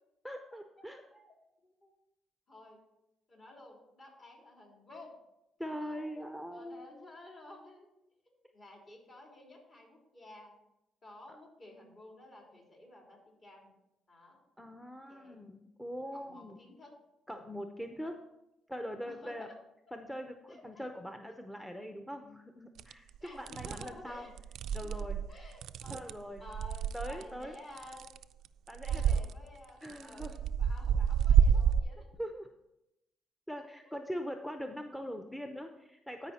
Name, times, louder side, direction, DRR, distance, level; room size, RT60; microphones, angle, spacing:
voice 1, 0.2-1.0 5.6-6.9 14.6-16.6 17.3-18.2 18.7-19.5 19.9-24.3 24.7-25.2 25.9-26.4 26.9-27.5 28.7-29.1 29.8-30.3 32.2-32.5 33.5-36.3, equal, 5° left, 5 dB, 0.7 m, -42 dB
voice 2, 2.5-2.8 3.3-5.2 5.6-6.2 6.5-7.9 8.5-10.6 11.0-13.8 14.1-14.4 15.1-15.4 16.1-16.9 17.3-17.5 19.1-19.5 20.5-20.9 21.1-21.3 23.2-24.3 24.8-28.1 28.8-32.1 33.8-33.9 34.9-35.0 35.3-35.7, left 1 dB, 45° left, -1 dB, 3.4 m, -53 dB
sound 1, 22.8-22.9 23.5-23.9 24.4-27.2 27.8-28.5 28.7-29.3 29.9-31.8, right 8 dB, 75° right, 0.3 m, -28 dB
13.0 x 5.0 x 4.2 m, 0.88 s
cardioid pair, 90°, 0 cm